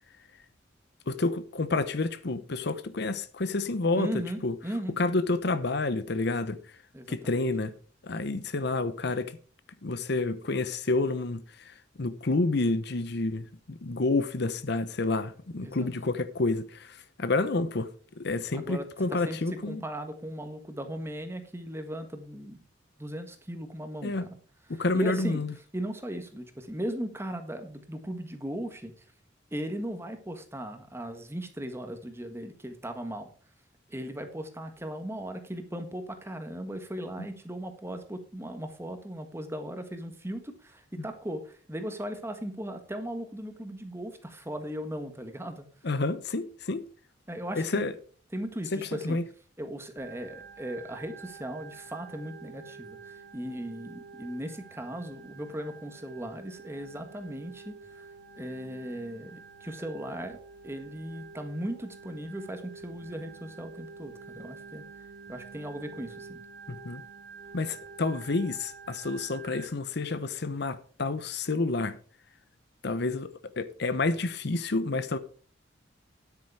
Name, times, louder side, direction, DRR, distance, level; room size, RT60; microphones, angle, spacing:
voice 1, 1.1-4.5 5.0-6.6 7.1-7.7 8.0-9.3 9.8-17.9 18.2-19.8 24.0-24.3 24.7-25.5 45.8-46.8 47.6-48.0 48.7-49.2 66.7-67.0 67.5-72.0 72.8-73.3 73.6-75.2, left 3 dB, 60° left, 0.8 m, -29 dB
voice 2, 3.9-5.0 6.9-7.4 15.6-15.9 18.5-19.4 19.7-22.6 23.0-24.4 24.9-25.4 25.7-28.9 29.5-33.3 33.9-45.6 47.3-47.9 48.3-49.2 49.6-57.7 58.4-60.4 60.6-64.8 65.3-66.4, right 1 dB, 15° right, 1.5 m, -37 dB
Organ, 50.0-69.7, right 5 dB, 65° right, 1.8 m, -48 dB
9.8 x 8.6 x 4.8 m
head